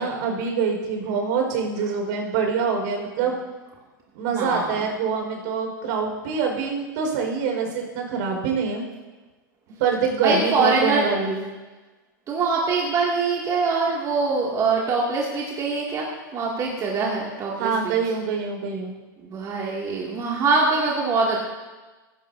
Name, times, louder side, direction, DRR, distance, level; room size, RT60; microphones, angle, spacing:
voice 1, 0.0-3.3 4.1-8.8 9.8-11.5 17.6-18.9, right 5 dB, 60° right, 2 dB, 5.0 m, -25 dB
voice 2, 4.3-4.9 10.2-11.1 12.3-16.1 16.3-17.9 19.2-21.4, right 4 dB, 30° right, -3 dB, 2.5 m, -23 dB
17.5 x 16.5 x 2.8 m, 1.2 s
hypercardioid pair, 115°, 11 cm